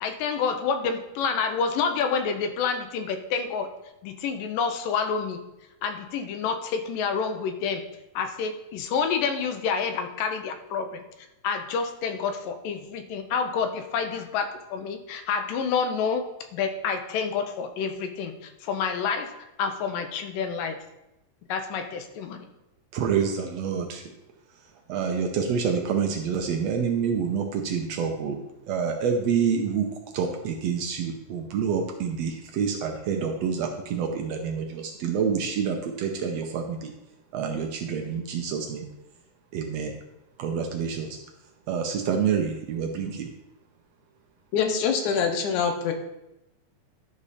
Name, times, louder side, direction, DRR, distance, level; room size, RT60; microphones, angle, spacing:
voice 1, 0.0-3.7 4.0-5.4 5.8-7.8 8.2-10.9 11.4-16.2 16.5-19.3 19.6-20.8 21.5-22.4, left 6 dB, 90° left, 7 dB, 2.5 m, -28 dB
voice 2, 22.9-24.0 24.9-29.9 30.1-36.9 37.3-38.8 39.5-39.9 40.4-41.2 41.7-43.3, right 6 dB, 75° right, 3 dB, 1.5 m, -27 dB
voice 3, 44.5-45.9, left 6 dB, 75° left, 6 dB, 2.2 m, -24 dB
11.5 x 5.1 x 4.2 m, 0.91 s
omnidirectional pair, 3.8 m